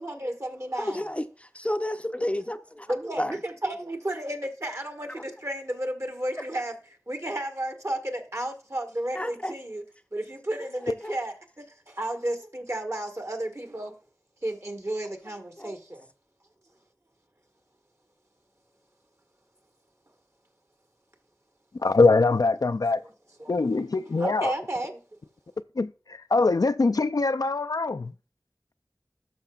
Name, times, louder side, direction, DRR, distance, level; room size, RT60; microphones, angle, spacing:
voice 1, 0.0-1.1 2.9-6.7 7.1-9.8 10.1-13.9 14.4-16.1 23.4-23.5 24.2-25.0, right 1 dB, 45° right, 1.5 m, -32 dB
voice 2, 0.8-3.4 5.2-5.3 9.2-9.5 11.0-11.2 15.6-15.7, left 1 dB, 20° left, 0.6 m, -31 dB
voice 3, 21.8-23.0 23.5-24.5 25.8-28.1, left 3 dB, 70° left, 0.4 m, -23 dB
12.5 x 6.0 x 2.4 m
wide cardioid pair, 45°, 7 cm